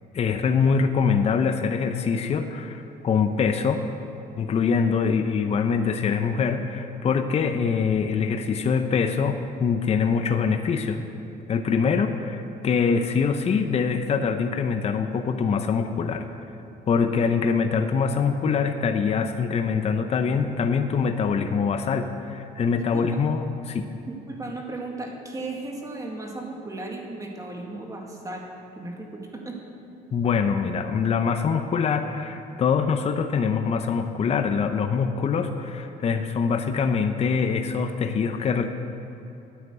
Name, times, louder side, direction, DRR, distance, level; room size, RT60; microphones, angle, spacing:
voice 1, 0.1-3.8 4.4-11.0 11.5-16.2 16.9-23.9 30.1-38.7, left 5 dB, 40° left, 8 dB, 0.7 m, -24 dB
voice 2, 22.7-23.0 24.1-28.4 28.8-29.6, right 2 dB, 20° right, 0 dB, 2.0 m, -35 dB
9.8 x 9.0 x 8.0 m, 3.0 s
cardioid pair, 110°, 17 cm